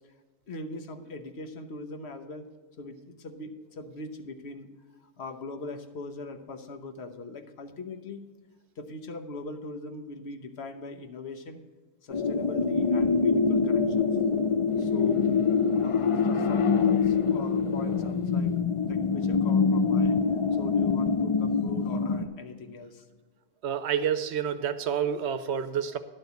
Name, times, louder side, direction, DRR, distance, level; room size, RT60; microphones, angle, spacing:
voice 1, 0.5-2.5 2.8-4.7 5.0-8.3 8.8-11.6 12.0-14.1 14.8-15.3 15.8-20.2 20.6-23.0, left 3 dB, 75° left, 6 dB, 1.2 m, -41 dB
sound 1, 12.1-22.3, left 5 dB, 40° left, 0.5 m, -25 dB
voice 2, 23.6-26.0, right 8 dB, 85° right, 12 dB, 1.0 m, -28 dB
11.0 x 4.3 x 8.0 m, 1.4 s
omnidirectional pair, 1.1 m